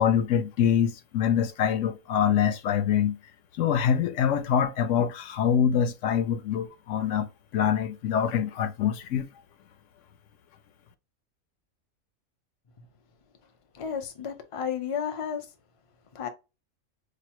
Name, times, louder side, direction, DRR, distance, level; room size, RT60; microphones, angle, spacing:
voice 1, 0.0-3.2 3.6-7.3 7.5-9.3, left 8 dB, 70° left, 0.9 m, -25 dB
voice 2, 13.7-15.5 16.1-16.3, left 7 dB, 40° left, 0.5 m, -32 dB
4.8 x 2.1 x 2.9 m
omnidirectional pair, 1.4 m